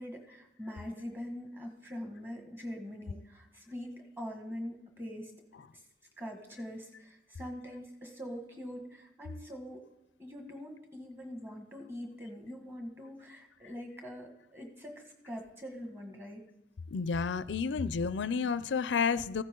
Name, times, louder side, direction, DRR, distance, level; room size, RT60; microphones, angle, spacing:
voice 1, 0.0-5.3 5.7-5.8 6.2-9.8 10.2-16.4, equal, 15° right, 3 dB, 1.8 m, -43 dB
voice 2, 16.9-19.4, left 5 dB, 80° left, 16 dB, 0.5 m, -30 dB
15.0 x 12.5 x 3.8 m, 0.87 s
head